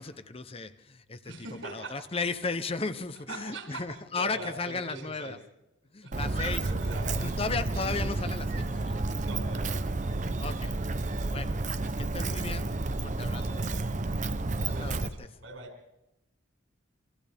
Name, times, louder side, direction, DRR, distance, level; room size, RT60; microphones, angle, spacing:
voice 1, 0.0-1.3 1.7-5.4 5.9-6.7 7.2-9.3 10.2-10.7 11.3-13.6 14.7-15.3, left 4 dB, 30° left, 11 dB, 0.8 m, -35 dB
voice 2, 1.2-2.0 2.4-2.5 3.3-5.4 6.0-6.2 6.5-7.1 9.2-9.9 13.4-13.6 14.7-15.7, right 2 dB, 80° right, 2 dB, 6.2 m, -42 dB
Walk footsteps, 6.1-15.1, right 2 dB, 40° right, 0.8 m, -31 dB
28.0 x 26.0 x 3.5 m, 0.94 s
head